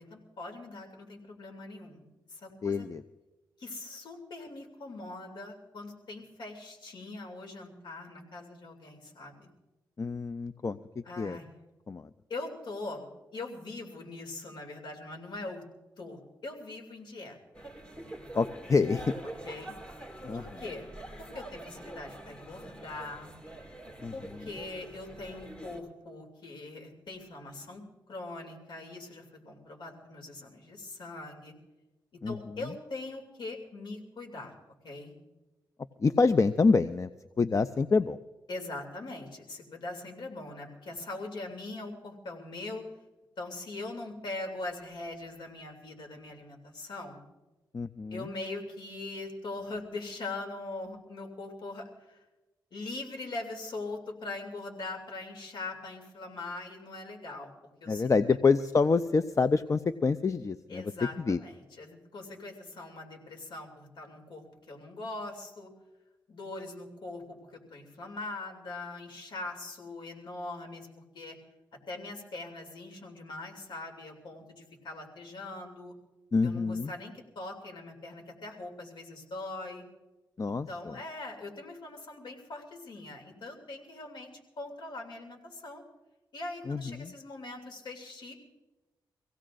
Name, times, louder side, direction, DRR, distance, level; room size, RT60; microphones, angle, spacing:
voice 1, 0.0-2.0 2.3-2.9 3.6-9.5 11.0-11.4 12.3-13.1 13.3-15.6 16.0-17.6 19.4-20.9 21.2-23.4 24.1-27.8 28.1-31.5 32.3-34.5 34.8-35.1 38.5-42.9 43.4-47.2 48.1-52.2 52.7-57.5 57.8-58.1 60.7-65.7 66.3-70.9 71.1-71.4 71.9-75.9 76.4-79.8 80.7-84.3 84.6-85.8 86.3-88.3, left 2 dB, 70° left, 3 dB, 2.7 m, -41 dB
voice 2, 2.6-3.0 10.0-11.4 11.9-12.1 18.3-19.0 20.2-20.4 24.0-24.5 32.2-32.7 36.0-37.1 37.4-38.2 47.7-48.2 57.9-60.9 61.3-61.4 76.3-76.9 80.4-81.0 86.7-87.1, left 4 dB, 40° left, 13 dB, 0.5 m, -27 dB
sound 1, 17.5-25.8, right 1 dB, 15° left, 2.5 m, -45 dB
25.5 x 16.5 x 2.5 m, 1.1 s
supercardioid pair, 50°, 8 cm